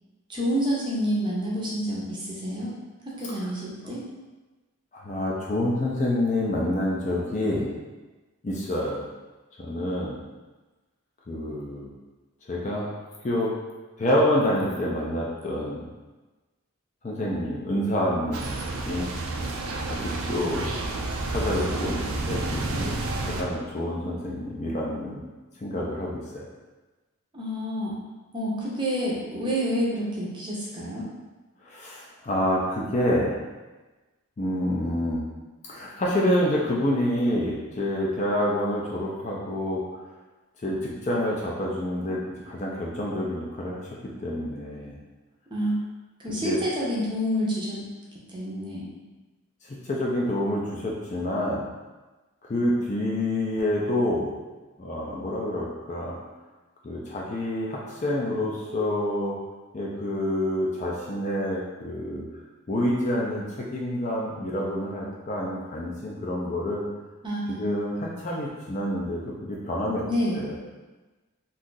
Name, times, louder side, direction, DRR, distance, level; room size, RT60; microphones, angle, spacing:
voice 1, 0.3-2.7 3.0-4.1 27.3-28.0 28.3-31.1 45.5-45.8 46.2-47.9 48.3-48.9 67.2-67.7 70.1-70.5, equal, 20° right, -5 dB, 0.6 m, -28 dB
voice 2, 4.9-7.7 8.4-9.0 9.6-10.2 11.3-11.9 12.5-12.9 13.2-13.5 14.0-15.9 17.0-18.5 18.8-19.1 19.9-20.8 21.3-25.2 25.6-26.5 31.7-33.3 34.4-35.2 35.7-39.8 40.6-42.2 42.5-43.9 44.2-45.0 46.4-46.6 49.8-51.7 52.5-54.3 54.8-56.2 56.8-59.4 59.7-62.2 62.7-66.8 67.5-70.1 70.3-70.6, left 1 dB, 30° left, -3 dB, 0.4 m, -27 dB
sound 1, 18.3-23.4, right 2 dB, 70° right, 0.4 m, -30 dB
2.6 x 2.3 x 3.8 m, 1.2 s
head